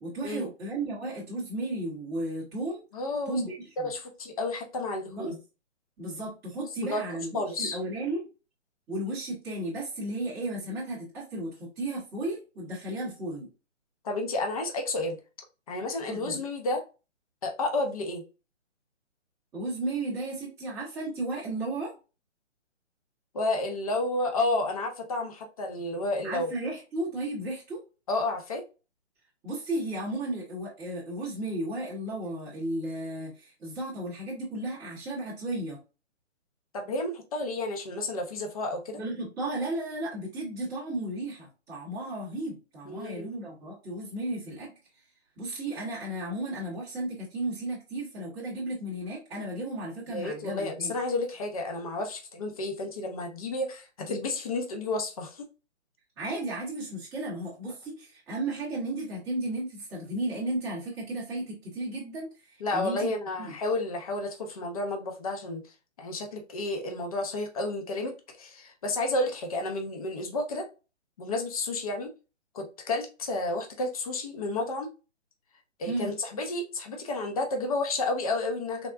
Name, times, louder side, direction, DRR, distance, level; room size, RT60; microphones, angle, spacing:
voice 1, 0.0-2.8 3.3-3.9 5.1-5.3 6.0-8.2 8.9-13.5 16.1-16.4 19.5-21.9 26.2-27.8 29.4-35.8 39.0-44.7 45.4-50.9 56.2-63.1 63.4-63.5 75.9-76.1, right 1 dB, 10° right, -9 dB, 0.7 m, -34 dB
voice 2, 2.9-3.5 3.8-5.4 6.9-7.8 14.0-15.2 15.7-16.8 17.4-18.2 23.3-26.5 28.1-28.6 36.7-39.0 42.9-43.3 50.1-55.5 62.6-65.6 66.0-70.6 71.2-72.1 72.5-74.9 75.8-78.9, left 2 dB, 30° left, 3 dB, 0.5 m, -31 dB
3.5 x 2.0 x 2.4 m, 0.32 s
hypercardioid pair, 150°, 36 cm